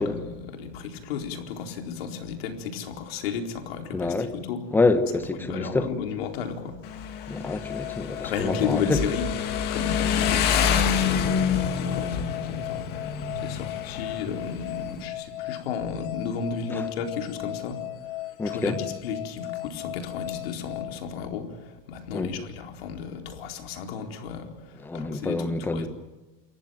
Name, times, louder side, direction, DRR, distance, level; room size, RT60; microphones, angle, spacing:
voice 1, 0.0-4.6 5.4-6.8 8.2-25.9, left 6 dB, 85° left, 4.3 m, -34 dB
voice 2, 3.9-4.3 4.7-5.9 7.3-9.0 16.7-16.8 18.4-18.8 22.1-22.3 24.8-25.9, left 3 dB, 5° left, 1.1 m, -26 dB
Motorcycle, 6.8-15.1, left 7 dB, 35° left, 2.2 m, -27 dB
sound 1, 7.3-21.7, left 17 dB, 60° left, 2.6 m, -37 dB
28.5 x 15.0 x 9.4 m
supercardioid pair, 170°, 30 cm